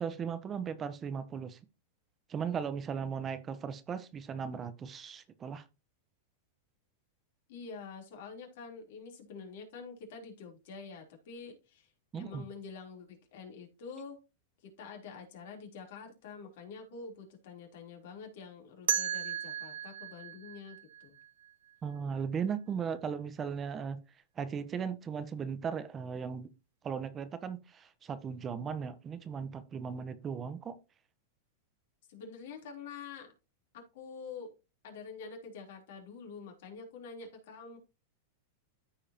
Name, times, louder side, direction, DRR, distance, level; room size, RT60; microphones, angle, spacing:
voice 1, 0.0-1.6 2.3-5.6 12.1-12.5 21.8-24.0 24.4-26.5 26.8-30.8, right 6 dB, 25° right, 0.9 m, -37 dB
voice 2, 7.5-14.2 14.8-21.2 32.1-33.3 33.7-34.5 34.8-37.8, left 5 dB, 70° left, 3.4 m, -47 dB
sound 1, 18.9-21.7, right 9 dB, 85° right, 1.0 m, -36 dB
14.0 x 4.8 x 2.9 m
hypercardioid pair, 125°, 0 cm